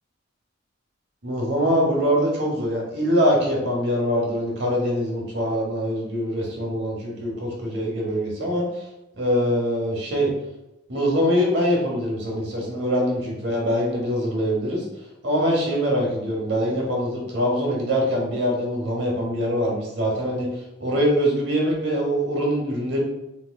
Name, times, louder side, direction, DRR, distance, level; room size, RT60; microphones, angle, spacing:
voice 1, 1.2-8.9 9.1-10.3 10.9-14.8 15.2-20.5 20.8-23.0, equal, 60° right, -1 dB, 0.9 m, -23 dB
3.5 x 2.8 x 2.2 m, 0.92 s
head